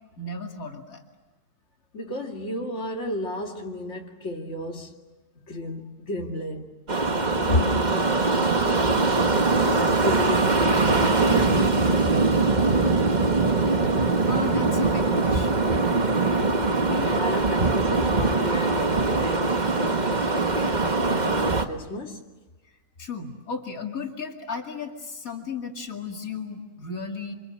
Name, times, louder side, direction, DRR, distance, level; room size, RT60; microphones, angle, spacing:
voice 1, 0.2-1.0 7.3-8.7 14.0-15.7 23.0-27.3, left 4 dB, 85° left, 2.9 m, -35 dB
voice 2, 1.9-5.0 5.4-6.7 7.1-7.5 9.6-13.3 16.8-22.2, left 1 dB, 55° left, 2.6 m, -33 dB
sound 1, 6.9-21.6, right 3 dB, 35° right, 1.6 m, -22 dB
28.0 x 26.5 x 7.7 m
omnidirectional pair, 1.4 m